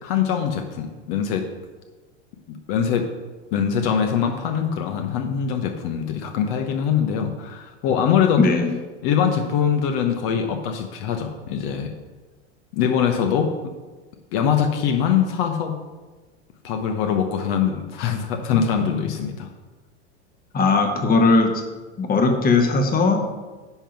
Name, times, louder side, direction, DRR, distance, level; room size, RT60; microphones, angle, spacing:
voice 1, 0.0-1.5 2.5-3.1 3.5-8.4 9.0-11.9 12.7-13.5 14.3-15.8 16.6-19.5, left 8 dB, 55° left, 5 dB, 1.0 m, -23 dB
voice 2, 8.4-8.7 20.5-21.6 22.0-23.2, left 3 dB, 25° left, 5 dB, 1.2 m, -18 dB
10.0 x 3.8 x 5.9 m, 1.3 s
hypercardioid pair, 95°, 34 cm